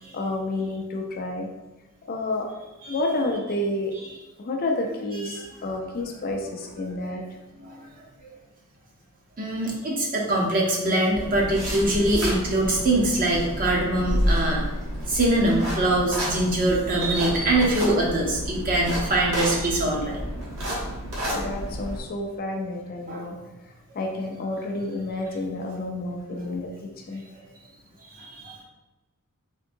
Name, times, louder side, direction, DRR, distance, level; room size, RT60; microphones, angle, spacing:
voice 1, 0.1-1.5 2.1-2.5 2.9-3.9 4.4-7.2 21.3-23.4 23.9-27.3, left 2 dB, 40° left, 2 dB, 0.4 m, -30 dB
voice 2, 9.4-14.6 15.1-20.2 23.1-23.3 28.1-28.6, right 1 dB, 40° right, -2 dB, 0.7 m, -23 dB
sound 1, 11.1-22.0, equal, 65° right, 1.1 m, -30 dB
3.7 x 2.6 x 2.6 m, 1.1 s
head